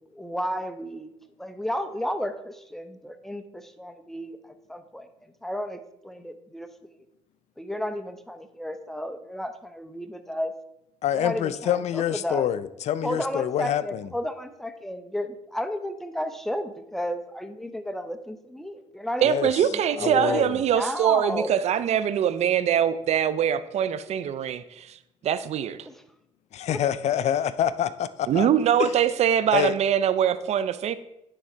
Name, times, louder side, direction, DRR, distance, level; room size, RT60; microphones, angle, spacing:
voice 1, 0.1-1.1 1.4-4.4 4.7-5.1 5.4-5.8 6.0-6.7 7.6-10.5 11.1-12.5 13.0-19.5 19.9-20.5 20.7-21.6 25.9-26.0 26.7-26.8, equal, 5° left, 9 dB, 0.7 m, -32 dB
voice 2, 11.0-14.1 19.3-19.5 20.0-20.6 26.5-28.5 28.8-28.9 29.5-29.7, left 10 dB, 60° left, 15 dB, 0.4 m, -26 dB
voice 3, 19.2-25.0 25.2-25.9 28.3-31.0, right 9 dB, 60° right, 14 dB, 0.4 m, -23 dB
9.9 x 3.6 x 4.4 m, 0.84 s
cardioid pair, 80°, 13 cm